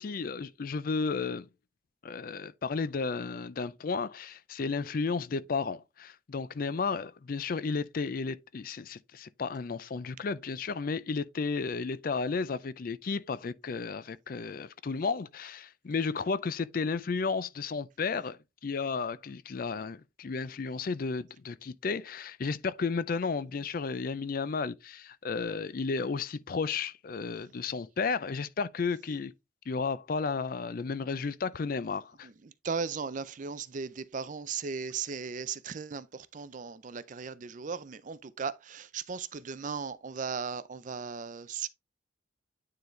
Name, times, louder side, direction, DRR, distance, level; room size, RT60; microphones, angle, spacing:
voice 1, 0.0-1.5 2.0-29.3 29.7-32.3, left 4 dB, 45° left, 0.4 m, -33 dB
voice 2, 32.6-41.7, right 5 dB, 40° right, 0.4 m, -37 dB
9.4 x 3.9 x 3.2 m
head